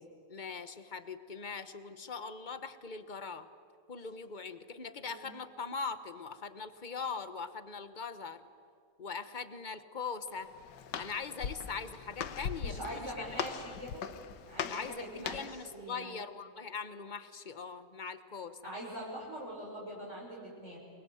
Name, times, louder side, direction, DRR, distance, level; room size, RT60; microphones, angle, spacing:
voice 1, 0.3-3.5 3.9-8.5 9.0-10.5 11.0-13.2 14.7-18.7, left 5 dB, 30° left, 11 dB, 1.0 m, -41 dB
Walk footsteps, 10.3-15.7, left 8 dB, 75° left, 1.6 m, -40 dB
voice 2, 12.6-14.1 14.5-16.2 18.6-20.8, right 1 dB, 40° right, -3 dB, 5.9 m, -43 dB
28.5 x 22.5 x 7.9 m, 2.5 s
omnidirectional pair, 1.9 m